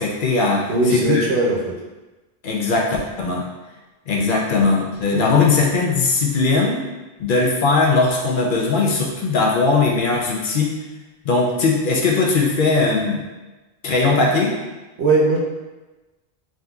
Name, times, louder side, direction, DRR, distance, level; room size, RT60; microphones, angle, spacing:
voice 1, 0.0-1.2 2.4-3.4 4.1-6.8 7.2-10.8 11.2-13.2 13.8-14.6, left 3 dB, 60° left, -2 dB, 0.7 m, -19 dB
voice 2, 0.7-1.8 5.1-5.4 15.0-15.4, right 2 dB, 85° right, -2 dB, 1.0 m, -19 dB
3.6 x 2.7 x 2.3 m, 1.1 s
omnidirectional pair, 1.1 m